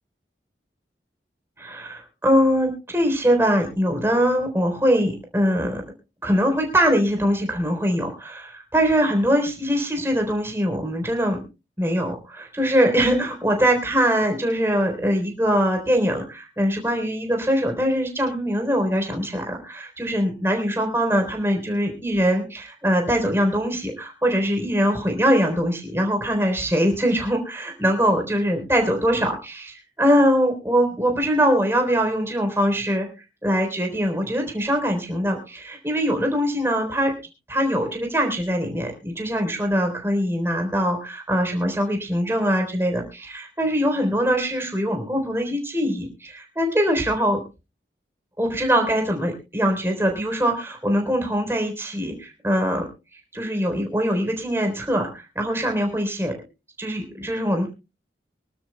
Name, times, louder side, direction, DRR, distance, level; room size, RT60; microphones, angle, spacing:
voice 1, 1.6-5.8 6.2-11.4 11.8-33.1 33.4-37.1 37.5-47.4 48.4-52.9 53.3-56.3 56.8-57.7, equal, 15° right, 3 dB, 3.7 m, -22 dB
25.0 x 12.5 x 2.3 m, 0.29 s
head